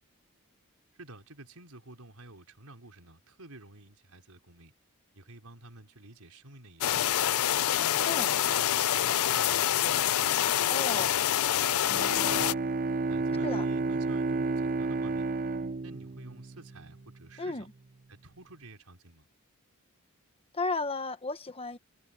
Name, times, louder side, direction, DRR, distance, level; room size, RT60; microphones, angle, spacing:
voice 1, 1.0-4.7 5.1-7.1 7.7-10.3 10.8-11.2 11.5-12.6 13.1-15.3 15.8-17.7 18.1-19.2, right 2 dB, 85° right, 4.6 m, -50 dB
sound 1, 6.8-12.5, left 11 dB, 75° left, 0.5 m, -26 dB
voice 2, 10.7-11.1 13.4-13.7 17.4-17.6 20.5-21.8, left 3 dB, 25° left, 1.3 m, -33 dB
Bowed string instrument, 11.9-17.1, right 3 dB, 40° right, 0.6 m, -31 dB
head